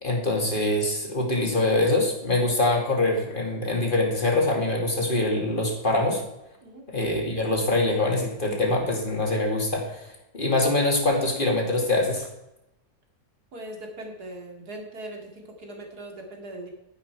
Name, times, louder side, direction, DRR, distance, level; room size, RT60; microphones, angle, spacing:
voice 1, 0.0-6.2 6.9-12.3, left 2 dB, 35° left, 1 dB, 2.3 m, -24 dB
voice 2, 13.5-16.7, right 1 dB, 85° right, 1 dB, 2.8 m, -40 dB
11.0 x 10.0 x 4.6 m, 0.89 s
omnidirectional pair, 1.6 m